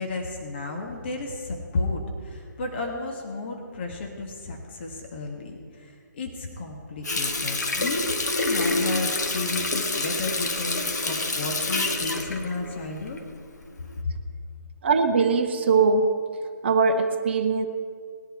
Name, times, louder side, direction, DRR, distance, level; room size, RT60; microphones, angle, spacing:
voice 1, 0.0-13.3 14.0-14.2, left 3 dB, 35° left, 1 dB, 1.7 m, -32 dB
Water tap faucet, 7.0-13.4 13.8-14.0, left 2 dB, 60° left, 1.6 m, -27 dB
voice 2, 14.8-16.1 16.6-17.7, right 4 dB, 35° right, 7 dB, 0.8 m, -21 dB
19.5 x 10.5 x 4.5 m, 2.1 s
figure-of-eight pair, 145°, 10 cm